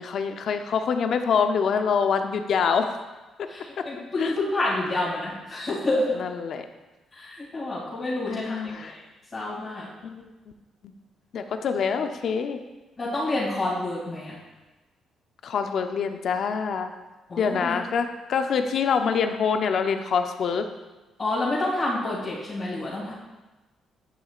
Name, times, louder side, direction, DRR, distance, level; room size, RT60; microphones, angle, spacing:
voice 1, 0.0-3.0 4.2-4.3 6.2-6.7 8.3-9.0 10.0-10.3 11.3-12.6 15.4-16.9 17.4-20.7, left 6 dB, 60° left, 7 dB, 0.6 m, -25 dB
voice 2, 3.5-6.2 7.1-9.0 9.3-9.9 13.0-14.3 17.3-17.8 21.2-23.1, left 2 dB, 40° left, -10 dB, 2.5 m, -28 dB
11.0 x 5.9 x 2.4 m, 1.1 s
cardioid pair, 90°, 0 cm